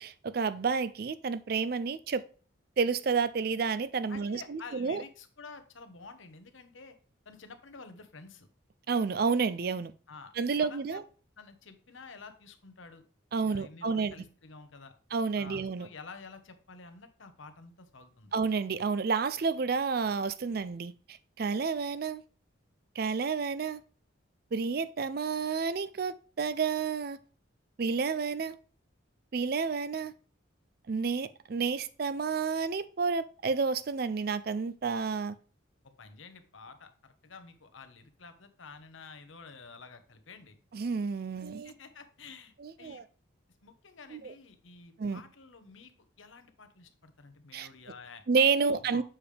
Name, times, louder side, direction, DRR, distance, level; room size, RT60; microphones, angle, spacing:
voice 1, 0.0-2.2 2.8-5.0 8.9-9.9 10.4-11.0 13.3-14.1 15.1-15.9 18.3-22.2 23.0-23.8 24.5-27.2 27.8-28.6 29.3-30.1 30.9-35.4 40.7-41.7 42.6-43.0 44.1-44.3 45.0-45.2 47.5-47.7 48.3-49.0, right 5 dB, 50° right, 0.4 m, -30 dB
voice 2, 4.1-7.0 7.2-8.5 10.1-11.0 11.4-13.0 13.4-14.9 15.4-18.3 35.8-40.6 41.6-43.0 43.6-45.9 46.2-48.2 48.7-49.0, left 4 dB, 75° left, 1.0 m, -50 dB
7.2 x 5.0 x 3.3 m
head